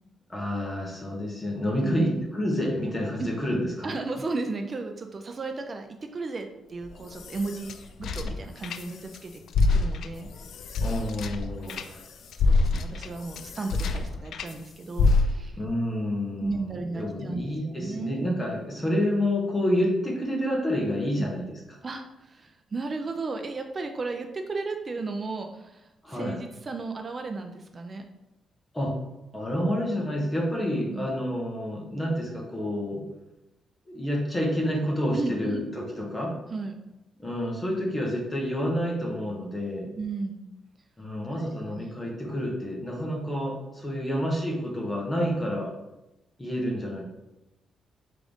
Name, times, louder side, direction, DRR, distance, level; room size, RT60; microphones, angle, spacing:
voice 1, 0.3-3.9 10.8-12.0 12.5-12.6 15.5-21.4 26.0-26.4 28.7-28.9 29.3-33.0 33.9-36.3 37.2-39.9 41.0-45.7 46.4-47.0, equal, 10° left, -2 dB, 1.0 m, -29 dB
voice 2, 1.8-2.2 3.2-3.3 3.8-5.9 6.1-9.4 9.7-10.3 11.6-11.9 12.4-15.6 16.4-18.3 21.2-21.3 21.8-28.0 30.9-31.2 35.1-35.7 36.5-36.8 40.0-40.4 41.7-41.9 44.0-44.2, right 3 dB, 25° right, 5 dB, 0.3 m, -34 dB
sound 1, 6.8-9.2 9.5-14.5 15.0-15.7, left 3 dB, 60° left, 0.3 m, -26 dB
3.7 x 3.7 x 3.5 m, 0.96 s
cardioid pair, 160°, 0 cm